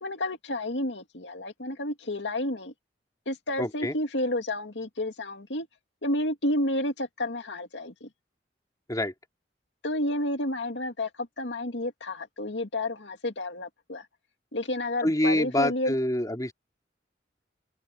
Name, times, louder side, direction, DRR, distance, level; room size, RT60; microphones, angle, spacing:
voice 1, 0.0-2.7 3.3-5.7 6.0-8.1 9.8-14.1 14.5-15.9, left 1 dB, 85° left, 2.3 m, -30 dB
voice 2, 3.6-3.9 8.9-9.1 15.0-16.5, left 1 dB, 20° left, 2.8 m, -26 dB
open air
head